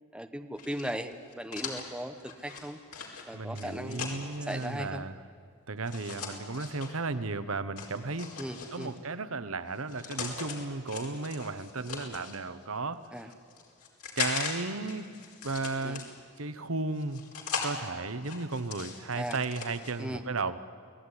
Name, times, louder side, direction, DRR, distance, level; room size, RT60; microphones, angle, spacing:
voice 1, 0.1-2.2 2.4-2.8 3.3-4.0 4.5-5.0 8.4-8.9 13.1-13.3 15.8-16.0 19.1-19.4 20.0-20.2, equal, 5° right, 7 dB, 1.0 m, -37 dB
sound 1, 0.6-4.7 5.8-6.9 7.8-9.0 9.7-10.6 10.9-12.4 13.0-14.5 14.8-16.4 16.9-17.7 18.2-19.9, left 6 dB, 90° left, 4.7 m, -39 dB
voice 2, 3.3-5.2 5.7-8.3 8.7-13.3 14.2-15.1 15.4-16.0 16.4-17.2 17.6-20.6, right 3 dB, 70° right, 12 dB, 1.1 m, -34 dB
28.5 x 18.5 x 9.9 m, 2.3 s
head